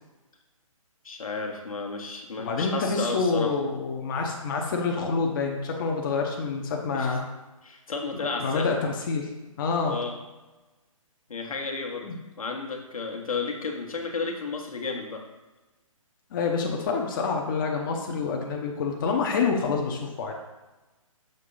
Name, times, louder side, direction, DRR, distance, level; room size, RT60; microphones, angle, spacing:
voice 1, 1.0-3.5 6.9-7.2 7.6-8.7 9.8-10.2 11.3-12.1 12.4-15.2, left 4 dB, 75° left, 2 dB, 1.2 m, -32 dB
voice 2, 2.4-7.2 8.4-9.3 9.6-10.0 12.0-12.2 16.3-20.3, left 4 dB, 35° left, 1 dB, 0.7 m, -27 dB
6.5 x 2.8 x 5.4 m, 1.1 s
hypercardioid pair, 145°, 18 cm